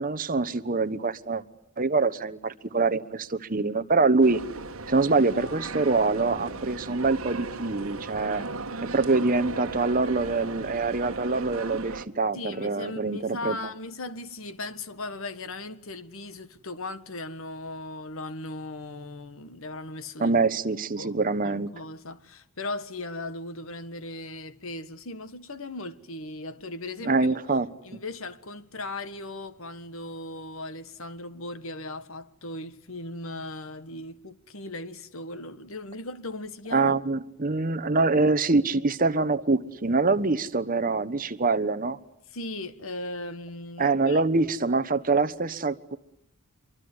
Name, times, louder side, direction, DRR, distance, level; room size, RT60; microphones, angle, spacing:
voice 1, 0.0-1.4 1.8-4.4 4.9-8.4 8.8-13.6 20.2-21.7 27.0-27.7 36.7-42.0 43.8-46.0, right 3 dB, 40° right, 1.1 m, -25 dB
sound 1, 4.2-12.0, right 3 dB, 70° right, 1.6 m, -37 dB
voice 2, 12.3-20.3 21.0-21.2 21.4-27.4 27.8-37.0 42.3-44.2, left 2 dB, 70° left, 1.5 m, -38 dB
26.0 x 23.5 x 9.8 m
head